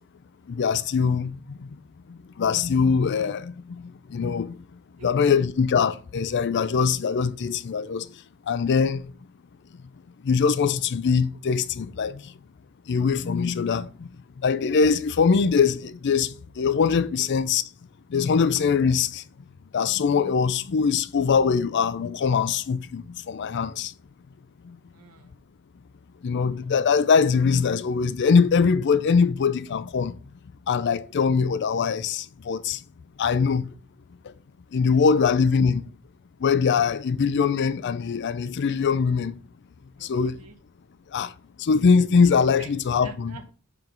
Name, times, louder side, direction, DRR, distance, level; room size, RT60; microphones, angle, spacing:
voice 1, 0.5-1.4 2.4-3.5 4.1-4.5 5.0-8.0 8.5-9.0 10.2-12.2 12.9-14.1 14.4-17.6 18.1-19.2 19.7-23.9 26.2-30.1 30.7-32.8 33.2-33.6 34.7-35.8 36.4-39.3 40.0-40.4 41.1-41.3 41.6-43.3, left 5 dB, 55° left, 0.4 m, -22 dB
voice 2, 5.0-5.4 17.2-17.3 24.9-25.4 40.0-40.6 42.5-42.7 43.0-43.5, right 3 dB, 85° right, 0.9 m, -45 dB
5.9 x 4.5 x 5.2 m
head